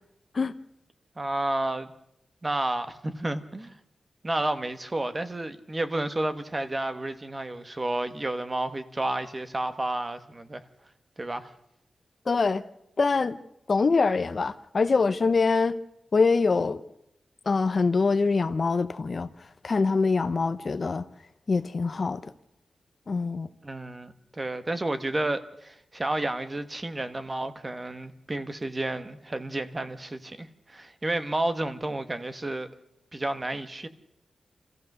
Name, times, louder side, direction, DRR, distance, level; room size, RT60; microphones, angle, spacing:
voice 1, 1.2-1.9 2.4-3.7 4.2-10.6 11.2-11.5 23.6-32.7 33.1-33.9, right 2 dB, 20° right, 1.1 m, -31 dB
voice 2, 12.3-12.6 13.0-13.4 13.7-15.8 16.1-16.8 17.5-19.3 19.6-21.0 21.5-22.2 23.1-23.5, left 4 dB, 40° left, 0.7 m, -24 dB
26.5 x 15.0 x 6.6 m
wide cardioid pair, 155°, 0 cm